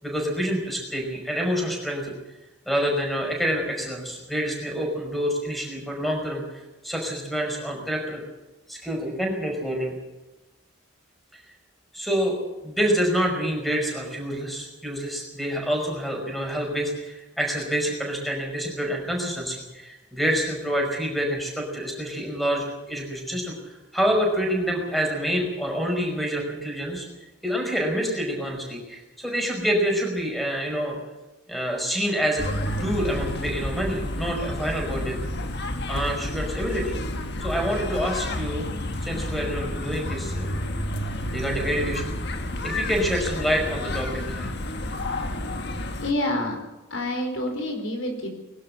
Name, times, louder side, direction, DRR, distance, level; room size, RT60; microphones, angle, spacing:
voice 1, 0.0-2.1 2.6-8.2 8.7-9.9 11.9-12.4 12.6-27.1 27.4-30.9 31.5-32.5 32.8-35.2 35.9-37.0 37.4-38.7 39.0-40.6 41.3-42.1 42.6-44.5, equal, ahead, 1 dB, 5.3 m, -27 dB
sound 1, 32.4-46.1, left 1 dB, 50° left, 1.6 m, -30 dB
voice 2, 46.0-46.6 46.9-48.3, left 1 dB, 65° left, 4 dB, 4.5 m, -27 dB
22.5 x 12.0 x 9.8 m, 1.1 s
head